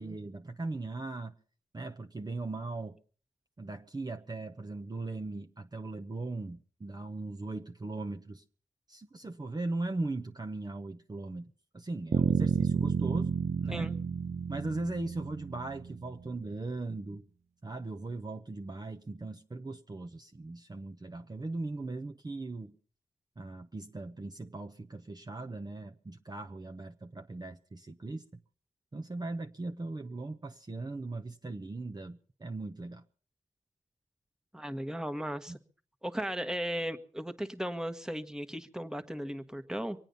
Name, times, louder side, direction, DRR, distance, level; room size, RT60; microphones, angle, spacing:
voice 1, 0.0-1.3 1.7-3.0 3.6-8.4 8.9-13.3 13.6-13.9 14.5-17.3 17.6-22.7 23.4-28.4 28.9-33.0 35.5-35.6, right 2 dB, 30° right, 0.9 m, -39 dB
sound 1, 12.1-16.1, right 6 dB, 60° right, 0.6 m, -31 dB
voice 2, 34.5-35.6 36.0-40.1, equal, 5° right, 1.4 m, -36 dB
24.5 x 9.0 x 5.4 m
cardioid pair, 55°, 13 cm